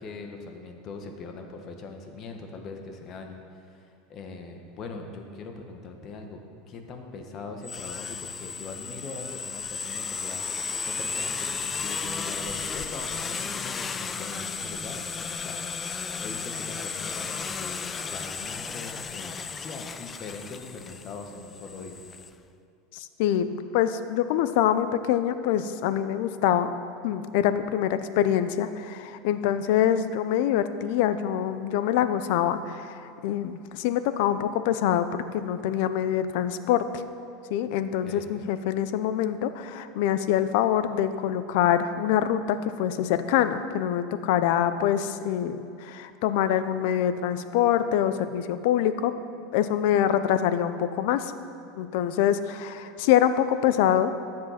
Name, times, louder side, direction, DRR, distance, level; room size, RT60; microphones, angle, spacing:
voice 1, 0.0-6.4 6.7-22.0 38.0-38.3, left 3 dB, 40° left, 4 dB, 1.3 m, -41 dB
sound 1, 7.6-22.3, left 5 dB, 20° left, 0.4 m, -34 dB
voice 2, 22.9-26.7 27.0-36.8 37.5-49.1 49.5-51.3 51.8-54.1, left 10 dB, 65° left, 11 dB, 0.6 m, -25 dB
13.0 x 7.6 x 5.8 m, 2.4 s
supercardioid pair, 140°, 0 cm